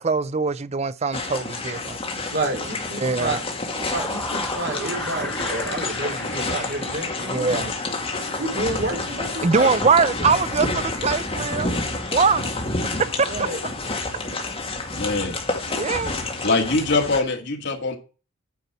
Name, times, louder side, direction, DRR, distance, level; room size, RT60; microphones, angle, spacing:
voice 1, 0.0-2.2 3.0-3.4 7.3-7.7 9.4-11.7 12.0-12.5 13.2-13.5 15.7-16.1, right 4 dB, 30° right, 0.5 m, -22 dB
sound 1, 1.1-17.2, left 2 dB, 25° left, 2.2 m, -29 dB
voice 2, 2.3-3.4 3.9-7.6 8.4-9.8 13.3-13.6, right 2 dB, 55° right, 3.5 m, -29 dB
sound 2, 3.4-7.9, left 1 dB, 10° left, 1.8 m, -35 dB
voice 3, 14.9-15.4 16.4-18.0, left 3 dB, 55° left, 2.1 m, -23 dB
9.2 x 5.8 x 6.8 m
head